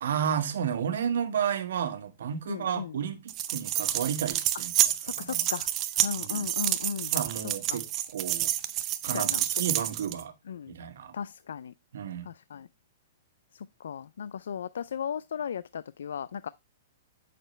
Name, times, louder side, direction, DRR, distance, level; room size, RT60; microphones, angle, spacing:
voice 1, 0.0-4.7 5.2-5.4 6.2-6.5 7.1-7.8 8.1-8.5 9.0-9.3 9.6-10.3 10.7-11.1 11.9-12.3, right 8 dB, 75° right, 1.6 m, -32 dB
voice 2, 2.5-3.0 5.0-7.1 7.7-7.8 9.1-9.6 10.5-10.7 11.1-11.7 12.2-12.7 13.5-16.5, left 7 dB, 85° left, 0.4 m, -36 dB
sound 1, 3.3-10.2, right 12 dB, 25° right, 0.7 m, -29 dB
9.1 x 6.6 x 3.2 m
hypercardioid pair, 155°, 0 cm